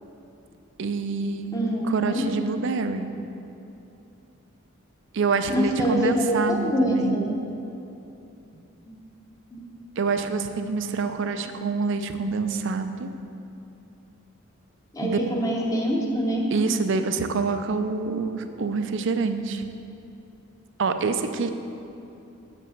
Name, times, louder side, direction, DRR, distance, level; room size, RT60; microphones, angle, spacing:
voice 1, 0.8-1.6 1.9-3.1 5.1-7.2 10.0-13.1 15.0-15.2 16.5-19.6 20.8-21.5, right 4 dB, 60° right, 8 dB, 0.5 m, -26 dB
voice 2, 1.5-2.3 5.5-7.3 9.5-9.6 14.9-16.5, equal, 15° left, -1 dB, 0.9 m, -24 dB
6.9 x 5.3 x 6.5 m, 2.8 s
head